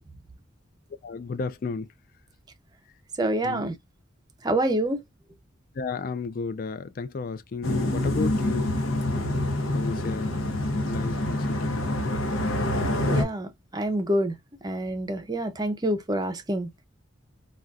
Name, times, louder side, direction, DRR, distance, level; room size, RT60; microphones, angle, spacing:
voice 1, 1.0-1.9 3.4-3.8 5.8-8.7 9.1-9.4 9.7-10.3 10.9-11.8, left 4 dB, 45° left, 0.3 m, -33 dB
voice 2, 3.2-3.7 4.4-5.0 13.1-14.3 14.6-16.7, right 1 dB, 20° right, 0.5 m, -27 dB
sound 1, 7.6-13.2, left 1 dB, 90° left, 0.8 m, -26 dB
3.8 x 2.3 x 2.3 m
head